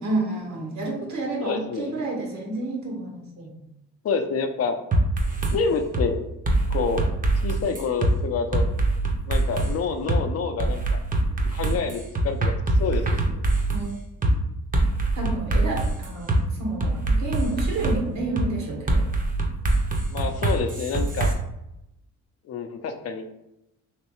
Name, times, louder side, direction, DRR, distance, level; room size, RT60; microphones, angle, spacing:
voice 1, 0.0-3.6 13.7-14.4 15.1-19.0, right 2 dB, 70° right, 0 dB, 1.2 m, -30 dB
voice 2, 1.4-2.0 4.0-4.8 5.5-6.2 6.7-7.0 7.4-8.7 9.3-11.0 11.5-12.5 12.8-13.4 20.1-21.3 22.5-23.3, left 5 dB, 55° left, 6 dB, 0.5 m, -27 dB
sound 1, 4.9-5.5 5.9-6.1 6.4-8.1 8.5-9.7 10.1-10.2 10.6-13.8 14.2-14.3 14.7-16.4 16.8-18.0 18.4-18.5 18.9-21.3, right 2 dB, 30° right, 0.7 m, -23 dB
3.3 x 3.0 x 3.0 m, 0.84 s
cardioid pair, 90°, 30 cm